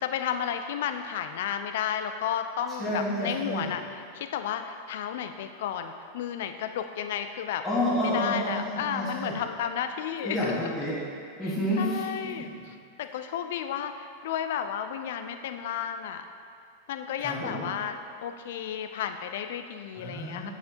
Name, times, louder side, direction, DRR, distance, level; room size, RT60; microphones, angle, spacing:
voice 1, 0.0-7.6 8.0-10.5 11.8-12.5 13.0-16.2 16.9-18.0 18.2-20.5, left 9 dB, 55° left, 8 dB, 0.3 m, -32 dB
voice 2, 2.8-3.7 7.6-9.4 10.2-11.0 11.4-12.5 17.2-17.7 20.0-20.5, equal, ahead, -10 dB, 1.4 m, -30 dB
9.5 x 4.2 x 2.7 m, 2.3 s
figure-of-eight pair, 90°, 0 cm